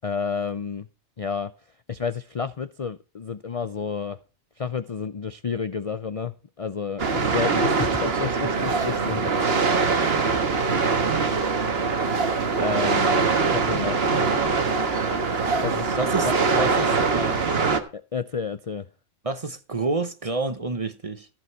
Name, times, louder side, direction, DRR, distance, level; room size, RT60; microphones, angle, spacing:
voice 1, 0.0-0.9 1.2-1.5 1.9-4.2 4.6-9.3 12.6-14.1 15.6-16.0 16.2-16.3 17.9-18.9, left 5 dB, 50° left, 0.4 m, -30 dB
sound 1, 7.0-17.8, right 4 dB, 45° right, 1.5 m, -23 dB
voice 2, 15.9-17.4 19.2-21.3, right 3 dB, 30° right, 0.9 m, -29 dB
14.5 x 7.4 x 4.6 m
omnidirectional pair, 1.4 m